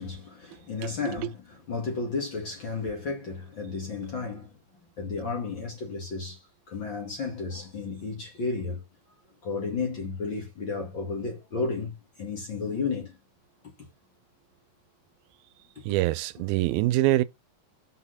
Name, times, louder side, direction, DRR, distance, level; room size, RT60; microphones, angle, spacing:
voice 1, 0.0-1.4 1.7-4.5 5.0-8.9 9.4-13.2 13.8-13.9, left 4 dB, 40° left, 2.0 m, -33 dB
voice 2, 0.8-1.3 15.8-17.2, right 16 dB, 90° right, 2.5 m, -25 dB
6.2 x 5.8 x 5.5 m
omnidirectional pair, 4.2 m